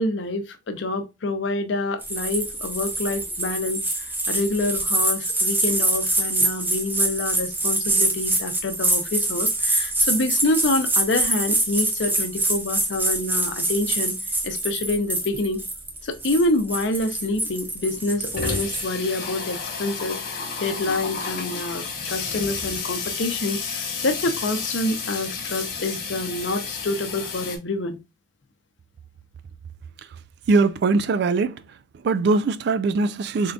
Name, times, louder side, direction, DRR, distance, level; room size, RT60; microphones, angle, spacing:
voice 1, 0.0-3.9 4.3-14.2 14.4-15.6 16.0-28.0, left 2 dB, 65° left, 0.6 m, -27 dB
sound 1, 2.0-18.9, right 2 dB, 10° right, 0.6 m, -25 dB
Water tap faucet / Sink (filling or washing), 16.9-17.0 17.3-17.4 17.7-27.6, left 5 dB, 50° left, 1.0 m, -31 dB
voice 2, 30.5-31.6 32.0-33.5, right 3 dB, 60° right, 0.3 m, -21 dB
3.6 x 3.5 x 2.3 m
head